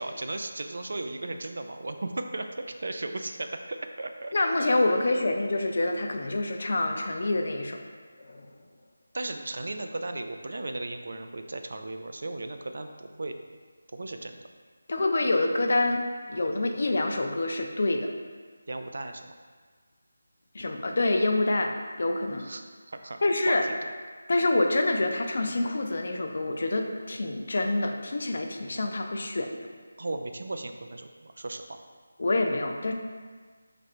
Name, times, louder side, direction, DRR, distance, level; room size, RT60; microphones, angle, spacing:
voice 1, 0.0-4.3 9.1-13.4 13.9-14.4 18.7-19.3 22.4-22.6 22.9-23.2 23.5-23.9 30.0-31.8, right 2 dB, 60° right, 6 dB, 0.3 m, -36 dB
voice 2, 4.3-7.8 8.2-8.5 14.9-16.0 16.3-18.1 20.5-22.5 23.2-23.7 24.3-29.5 32.2-32.9, left 2 dB, 50° left, 4 dB, 0.4 m, -26 dB
3.2 x 2.5 x 4.2 m, 1.5 s
figure-of-eight pair, 170°, 0 cm